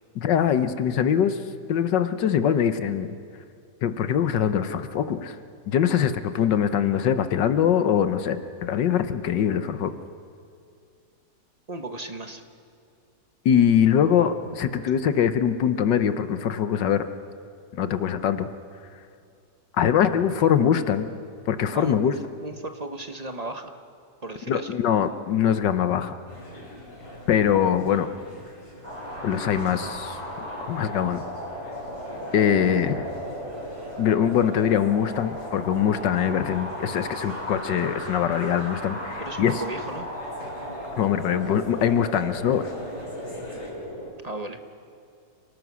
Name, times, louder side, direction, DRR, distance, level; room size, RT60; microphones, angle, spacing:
voice 1, 0.1-1.4 1.7-3.2 3.8-5.3 5.7-9.9 13.4-17.0 17.7-18.5 19.8-21.1 21.5-22.1 24.5-26.2 27.3-28.1 29.2-30.2 30.7-31.2 32.3-33.0 34.0-39.5 41.0-42.7, left 9 dB, 80° left, 10 dB, 1.6 m, -23 dB
voice 2, 11.7-12.4 14.4-14.5 21.7-22.1 22.4-23.8 24.2-24.7 32.4-32.5 39.2-40.1 44.2-44.6, right 2 dB, 25° right, 6 dB, 1.1 m, -35 dB
sound 1, 26.3-43.7, left 1 dB, 30° left, 4.7 m, -45 dB
sound 2, 28.8-44.1, equal, 15° left, 4.6 m, -36 dB
29.5 x 18.5 x 6.3 m, 2.4 s
omnidirectional pair, 1.9 m